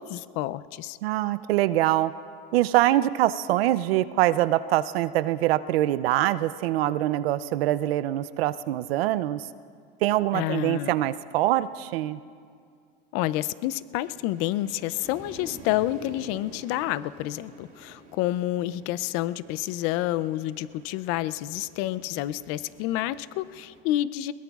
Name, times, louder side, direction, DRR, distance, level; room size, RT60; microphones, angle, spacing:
voice 1, 0.0-1.0 10.3-10.9 13.1-24.3, left 14 dB, 50° left, 17 dB, 0.5 m, -29 dB
voice 2, 1.0-2.1 2.5-9.5 10.0-12.2, right 14 dB, 90° right, 15 dB, 0.5 m, -24 dB
sound 1, 14.0-23.8, right 1 dB, 25° right, 3.6 m, -49 dB
21.5 x 21.0 x 2.4 m, 2.2 s
supercardioid pair, 125°, 29 cm